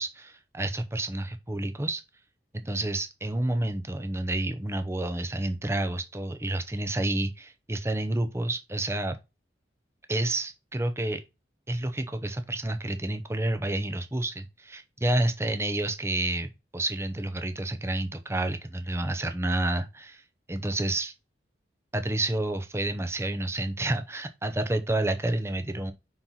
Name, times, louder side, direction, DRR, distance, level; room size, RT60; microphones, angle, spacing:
voice 1, 0.0-2.0 2.5-9.2 10.1-11.2 11.7-20.2 20.5-21.1 21.9-25.9, right 1 dB, 15° right, 0.7 m, -29 dB
5.7 x 4.4 x 3.8 m
head